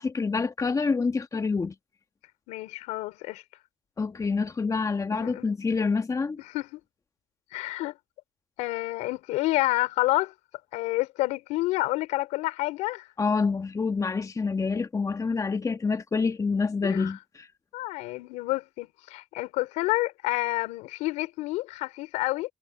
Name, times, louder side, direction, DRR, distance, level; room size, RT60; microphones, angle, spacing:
voice 1, 0.0-1.7 4.0-6.4 13.2-17.5, left 4 dB, 25° left, 1.4 m, -27 dB
voice 2, 2.5-3.4 5.1-5.5 6.4-6.8 7.5-7.9 8.6-10.3 10.7-13.1 16.8-17.1 17.7-22.5, left 19 dB, 85° left, 3.9 m, -29 dB
supercardioid pair, 75°, 12 cm